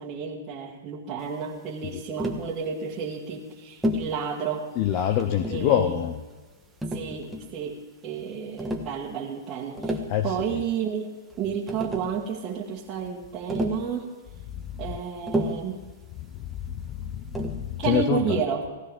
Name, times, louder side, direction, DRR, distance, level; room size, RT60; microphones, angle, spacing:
voice 1, 0.0-4.7 5.0-5.1 5.5-6.0 6.9-14.1 14.8-15.8 17.8-18.7, right 6 dB, 25° right, -6 dB, 1.9 m, -31 dB
Tap, 2.2-2.5 3.8-4.1 5.2-5.8 6.8-7.6 8.6-8.9 9.6-10.2 11.3-11.4 11.7-12.2 13.5-13.9 15.3-15.7 17.3-17.7, equal, 5° right, 1.5 m, -30 dB
voice 2, 4.8-6.1 10.1-10.4 14.5-14.9 16.4-18.4, left 10 dB, 40° left, 9 dB, 0.8 m, -26 dB
17.5 x 16.0 x 3.6 m, 1.3 s
hypercardioid pair, 135°, 0 cm